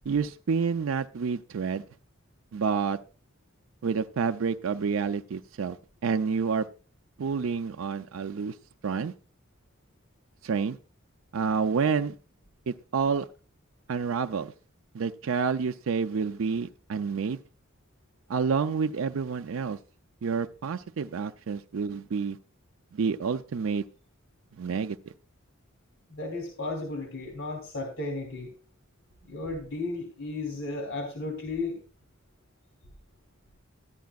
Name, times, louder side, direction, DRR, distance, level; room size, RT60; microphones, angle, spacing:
voice 1, 0.1-1.8 2.5-3.0 3.8-5.8 6.0-6.7 7.2-8.6 8.8-9.1 10.4-10.8 11.3-12.1 12.7-13.3 13.9-14.5 14.9-17.4 18.3-19.8 20.2-22.4 22.9-23.8 24.6-25.0, right 5 dB, 85° right, 0.4 m, -28 dB
voice 2, 26.1-28.5 29.2-31.8, left 2 dB, 85° left, 2.9 m, -34 dB
14.0 x 10.5 x 2.3 m
head